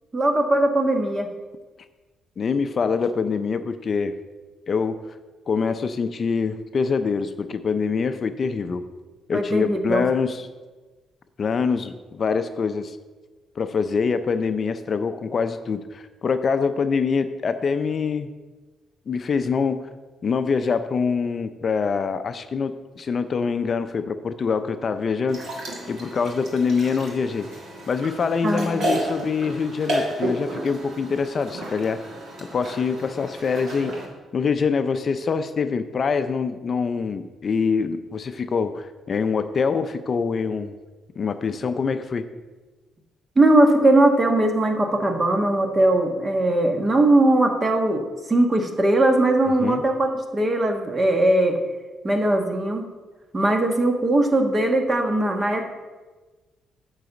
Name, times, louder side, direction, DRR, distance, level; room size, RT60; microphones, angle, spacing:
voice 1, 0.1-1.3 9.3-10.0 28.4-28.9 43.4-51.6 52.0-52.9 53.3-55.7, right 1 dB, 30° right, 4 dB, 1.2 m, -20 dB
voice 2, 2.4-4.1 4.7-5.0 5.5-8.8 9.3-10.5 11.4-13.0 13.6-18.3 19.1-19.9 20.2-25.4 25.9-27.5 27.9-32.0 32.5-34.0 34.3-40.7 41.2-42.3 49.6-49.8, left 5 dB, 45° left, 10 dB, 0.5 m, -24 dB
sound 1, 25.3-34.0, right 1 dB, 60° right, 2.3 m, -32 dB
9.1 x 4.0 x 6.9 m, 1.3 s
cardioid pair, 90°, 0 cm